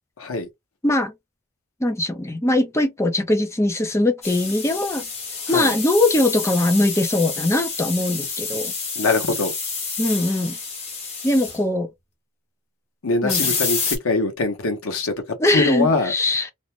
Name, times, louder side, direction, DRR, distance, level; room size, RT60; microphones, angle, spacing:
voice 1, 0.2-0.5 5.5-5.7 8.9-9.5 13.0-16.1, left 3 dB, 80° left, 0.9 m, -23 dB
voice 2, 1.8-5.1 5.5-8.7 10.0-10.6 11.2-11.9 13.2-13.5 15.4-16.5, left 1 dB, 15° left, 0.5 m, -21 dB
sound 1, 4.2-11.6 13.3-14.0, left 5 dB, 30° left, 1.1 m, -28 dB
2.5 x 2.1 x 3.1 m
head